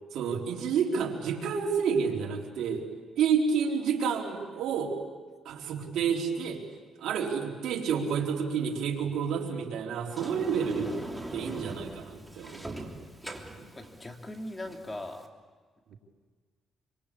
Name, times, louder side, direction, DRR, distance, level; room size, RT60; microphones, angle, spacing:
voice 1, 0.1-2.9 3.2-5.0 5.4-6.7 7.0-11.0 11.3-12.9 13.6-13.7 15.9-16.0, right 6 dB, 80° right, 0 dB, 4.1 m, -29 dB
Sliding door, 10.1-15.3, right 1 dB, 5° right, 3.2 m, -41 dB
voice 2, 12.1-12.5 13.7-15.3, left 1 dB, 20° left, 3 dB, 2.9 m, -40 dB
27.0 x 26.0 x 8.6 m, 1.5 s
cardioid pair, 100°, 0 cm